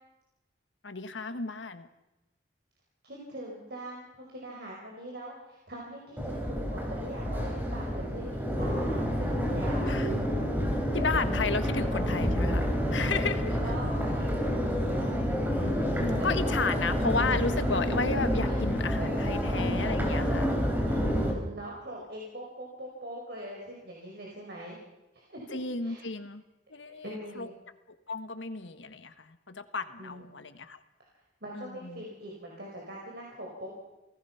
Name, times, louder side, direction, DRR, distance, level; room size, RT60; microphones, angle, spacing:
voice 1, 0.8-1.9 9.8-10.1 10.9-13.6 15.6-20.5 25.5-26.4 26.7-27.5 27.9-30.8 31.5-32.0, left 4 dB, 80° left, 10 dB, 1.6 m, -33 dB
voice 2, 3.0-9.9 13.6-14.3 15.0-15.1 16.2-16.5 18.1-18.2 18.5-18.6 19.0-19.4 20.9-24.8 25.1-26.0 26.9-27.5 30.0-30.2 31.4-33.9, right 1 dB, 60° right, -2 dB, 5.0 m, -42 dB
Crowd, 6.2-21.3, equal, 10° right, 4.1 m, -28 dB
28.0 x 18.5 x 5.8 m, 0.97 s
head